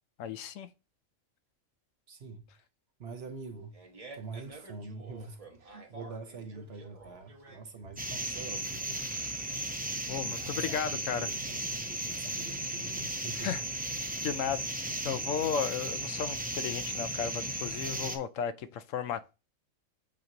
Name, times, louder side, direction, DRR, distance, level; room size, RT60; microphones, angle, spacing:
voice 1, 0.2-0.7 10.1-11.3 13.4-13.6 14.2-14.6 15.0-19.4, left 7 dB, 75° left, 0.9 m, -34 dB
voice 2, 2.1-2.5 3.0-3.8 4.1-9.0 10.2-13.6 14.5-14.7, right 4 dB, 55° right, 0.9 m, -45 dB
Fart, 3.4-11.4, right 3 dB, 30° right, 0.9 m, -52 dB
sound 1, 8.0-18.2, right 1 dB, 10° right, 0.4 m, -35 dB
8.4 x 3.0 x 3.8 m
omnidirectional pair, 1.4 m